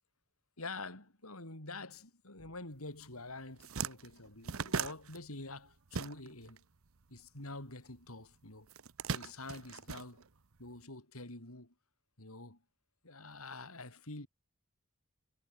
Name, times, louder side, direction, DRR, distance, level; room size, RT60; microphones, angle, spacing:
voice 1, 0.6-6.6 7.1-8.7 9.1-10.2 10.6-11.7 12.2-12.6 13.0-14.3, left 2 dB, 90° left, 5.8 m, -47 dB
sound 1, 3.0-3.1 3.4-6.6 6.8-8.0 8.7-10.7, right 5 dB, 80° right, 1.0 m, -39 dB
head